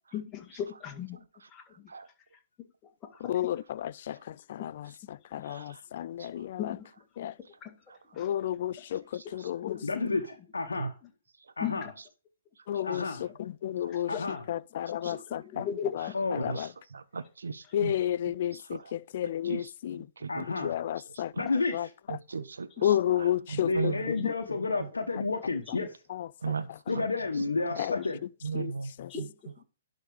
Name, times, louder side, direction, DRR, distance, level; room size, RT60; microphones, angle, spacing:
voice 1, 0.1-1.2 1.5-1.6 6.6-6.8 7.6-7.7 8.1-8.3 9.6-9.9 11.6-11.8 12.8-12.9 14.1-14.2 15.1-16.2 22.8-22.9 29.1-29.3, left 9 dB, 20° left, 1.8 m, -36 dB
voice 2, 3.2-4.2 4.5-4.9 5.3-6.7 7.2-7.3 8.2-9.0 9.3-10.0 12.7-13.0 13.4-14.1 14.5-15.7 15.9-16.1 16.4-16.7 17.7-20.0 20.6-21.3 21.7-21.9 22.8-24.2 27.8-28.0 28.6-28.7 29.0-29.1, left 11 dB, 50° left, 0.4 m, -31 dB
voice 3, 9.8-10.9 11.6-11.9 12.8-13.2 14.1-14.5 16.1-16.5 20.3-20.8 21.4-21.9 23.6-25.9 26.9-28.2, left 3 dB, 85° left, 1.1 m, -31 dB
voice 4, 16.9-17.9 18.5-18.9 19.2-19.7 20.2-20.4 21.3-21.4 22.3-24.0 24.7-24.9 26.4-26.7 26.9-27.0 28.4-28.9 29.2-29.3, right 5 dB, 80° right, 0.9 m, -36 dB
11.0 x 4.1 x 4.9 m
figure-of-eight pair, 130°, 0 cm